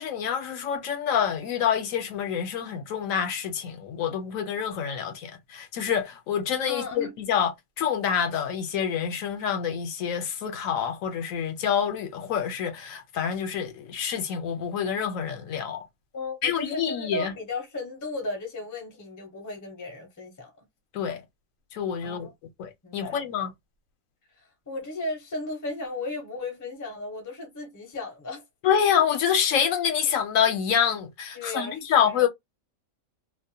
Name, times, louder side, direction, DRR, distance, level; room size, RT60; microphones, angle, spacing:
voice 1, 0.0-7.5 7.8-15.8 16.4-17.3 20.9-21.2 21.7-22.3 22.6-23.5 28.6-32.3, left 8 dB, 75° left, 1.0 m, -27 dB
voice 2, 6.7-7.1 16.1-20.6 22.0-22.3 22.8-23.4 24.7-28.4 31.3-32.3, left 2 dB, 20° left, 0.5 m, -35 dB
2.5 x 2.1 x 2.7 m
omnidirectional pair, 1.5 m